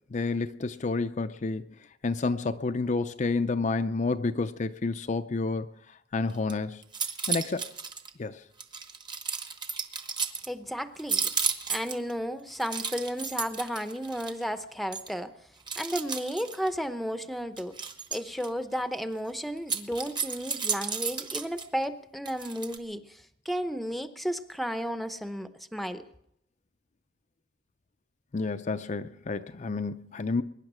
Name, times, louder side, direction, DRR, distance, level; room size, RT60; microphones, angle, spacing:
voice 1, 0.1-1.7 2.0-5.7 6.1-6.8 7.3-7.6 8.2-8.4 28.3-30.4, left 3 dB, 40° left, 0.5 m, -29 dB
sound 1, 6.3-6.5 6.8-8.1 8.6-10.5 11.0-12.1 12.5-14.4 14.9-15.1 15.7-16.7 17.6-18.5 19.6-21.7 22.2-22.8, right 5 dB, 25° right, 1.1 m, -33 dB
voice 2, 10.5-11.3 11.7-15.3 15.8-17.8 18.1-26.1, equal, ahead, 0.7 m, -33 dB
22.0 x 10.5 x 6.1 m
head